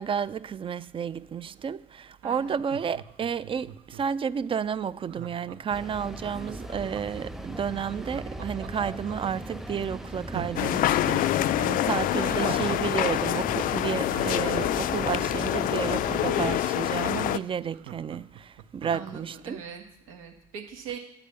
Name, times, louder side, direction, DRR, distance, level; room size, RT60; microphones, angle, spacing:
voice 1, 0.0-19.6, right 7 dB, 30° right, 0.4 m, -31 dB
voice 2, 2.2-2.6 12.1-12.5 18.9-21.0, right 7 dB, 90° right, 1.4 m, -41 dB
Laughter, 2.5-4.2 5.1-7.3 8.0-9.4 9.8-9.9 10.2-13.0 13.3-13.4 13.8-16.7 17.1-17.2 17.4-19.1 19.5-19.6, right 10 dB, 70° right, 0.6 m, -43 dB
sound 1, 5.7-16.6, right 1 dB, ahead, 0.7 m, -38 dB
sound 2, 10.6-17.4, left 13 dB, 55° left, 0.4 m, -26 dB
8.6 x 4.9 x 6.9 m
hypercardioid pair, 65°, 17 cm